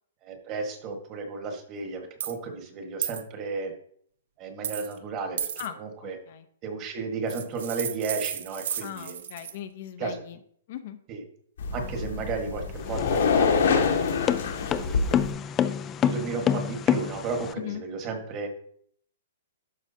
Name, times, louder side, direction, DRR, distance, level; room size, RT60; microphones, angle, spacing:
voice 1, 0.2-3.7 4.4-5.5 5.8-6.2 6.6-9.2 10.0-10.2 11.1-11.2 11.7-13.9 14.7-15.1 16.0-18.6, right 4 dB, 30° right, 4 dB, 1.4 m, -33 dB
sound 1, 2.2-2.3 3.0-3.2 4.6-5.0 5.4-5.7 7.3-9.6, right 9 dB, 65° right, 0.7 m, -33 dB
voice 2, 6.0-6.5 8.8-10.4 10.7-11.0 17.6-17.8, left 11 dB, 50° left, 9 dB, 0.7 m, -38 dB
sound 2, 11.6-15.3, left 5 dB, 80° left, 1.8 m, -25 dB
sound 3, 12.8-17.5, left 9 dB, 20° left, 0.4 m, -27 dB
11.5 x 4.9 x 2.7 m, 0.62 s
hypercardioid pair, 155°, 0 cm